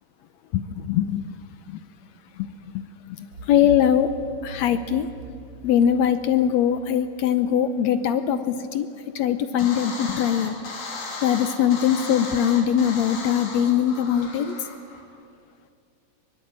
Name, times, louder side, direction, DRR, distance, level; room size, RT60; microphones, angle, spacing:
voice 1, 0.5-1.4 1.7-1.8 3.2-4.1 4.4-5.1 5.6-8.9 9.1-10.6 11.2-14.6, left 9 dB, 75° left, 11 dB, 1.7 m, -21 dB
sound 1, 3.3-8.2, right 2 dB, 40° right, 2.2 m, -41 dB
sound 2, 9.6-15.0, left 3 dB, 60° left, 4.4 m, -35 dB
23.0 x 22.0 x 8.9 m, 2.4 s
omnidirectional pair, 3.9 m